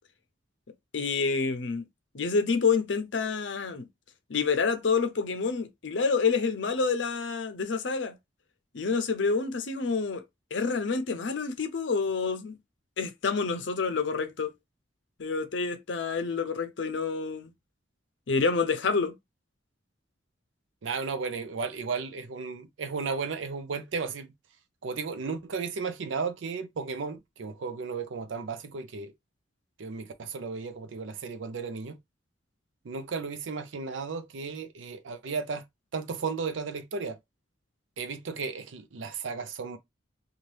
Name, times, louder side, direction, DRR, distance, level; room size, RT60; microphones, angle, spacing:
voice 1, 0.9-1.8 2.1-3.9 4.3-8.2 8.7-10.2 10.5-12.6 13.0-14.5 15.2-17.5 18.3-19.1, left 4 dB, 70° left, 0.6 m, -28 dB
voice 2, 20.8-24.3 24.8-29.1 29.8-32.0 32.8-35.6 35.9-37.2 38.0-39.8, right 5 dB, 90° right, 0.5 m, -34 dB
2.7 x 2.3 x 3.2 m
head